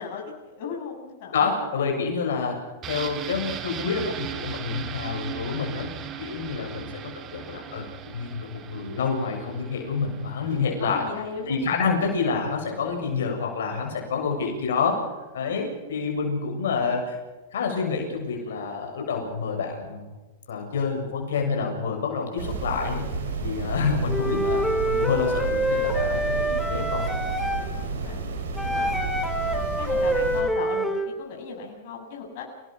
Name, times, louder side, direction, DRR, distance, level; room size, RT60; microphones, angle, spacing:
voice 1, 0.0-1.6 10.8-11.6 13.5-13.8 18.4-18.6 27.4-28.2 28.6-29.1 29.4-32.4, left 5 dB, 60° left, 1 dB, 7.3 m, -38 dB
voice 2, 1.3-5.9 6.2-11.0 11.5-15.1 15.3-17.2 17.5-20.1 20.5-27.1, left 5 dB, 80° left, 2 dB, 7.4 m, -28 dB
sound 1, 2.8-12.5 12.8-12.9, right 8 dB, 35° right, 3.2 m, -38 dB
sound 2, 22.4-30.4, right 3 dB, 80° right, 6.9 m, -31 dB
Wind instrument woodwind instrument, 24.1-27.7 28.6-31.1, right 1 dB, 5° left, 3.6 m, -26 dB
28.5 x 19.0 x 6.2 m, 1.2 s
hypercardioid pair, 115°, 0 cm